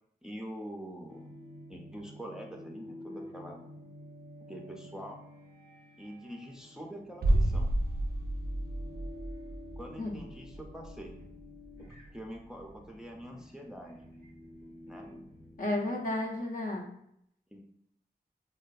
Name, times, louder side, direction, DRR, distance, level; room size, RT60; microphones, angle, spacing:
voice 1, 0.2-1.3 1.7-3.6 4.5-5.2 6.0-7.7 9.8-11.2 11.8-11.9 12.1-14.0 14.9-15.1 17.5-17.7, equal, 5° right, 1 dB, 0.4 m, -45 dB
sound 1, 1.1-16.2, left 1 dB, 90° left, 1.0 m, -51 dB
sound 2, 7.2-12.9 13.2-13.3, right 1 dB, 75° right, 0.4 m, -32 dB
voice 2, 15.6-16.9, left 1 dB, 60° left, 0 dB, 0.5 m, -32 dB
2.5 x 2.2 x 2.3 m, 0.74 s
cardioid pair, 55°, 16 cm